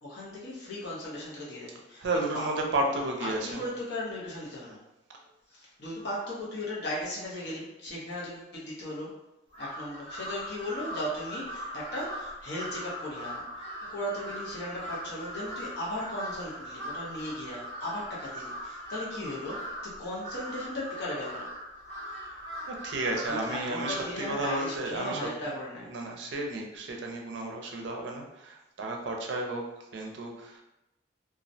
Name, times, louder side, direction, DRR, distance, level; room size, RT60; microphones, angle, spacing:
voice 1, 0.0-2.1 2.3-2.5 2.9-4.8 5.5-9.1 9.6-21.5 23.2-25.9, left 1 dB, 60° left, -6 dB, 0.8 m, -37 dB
voice 2, 2.0-3.6 22.3-22.4 22.7-25.2 25.9-29.6 29.9-30.6, right 2 dB, 70° right, 1 dB, 0.4 m, -32 dB
Crow, 9.5-24.9, equal, 30° left, 0.9 m, -40 dB
2.3 x 2.1 x 2.6 m, 0.91 s
head